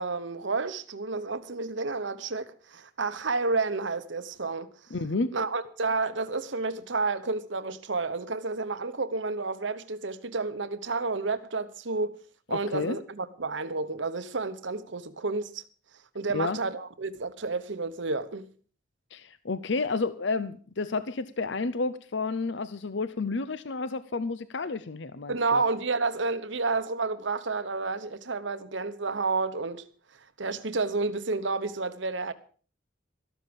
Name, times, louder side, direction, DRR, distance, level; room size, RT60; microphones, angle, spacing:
voice 1, 0.0-4.7 5.3-12.1 12.5-15.6 16.1-18.5 25.3-29.8 30.4-32.3, right 3 dB, 70° right, 1.0 m, -30 dB
voice 2, 4.9-5.3 12.5-13.0 16.3-16.6 19.1-25.6, left 3 dB, 65° left, 0.7 m, -31 dB
13.5 x 13.0 x 5.3 m
head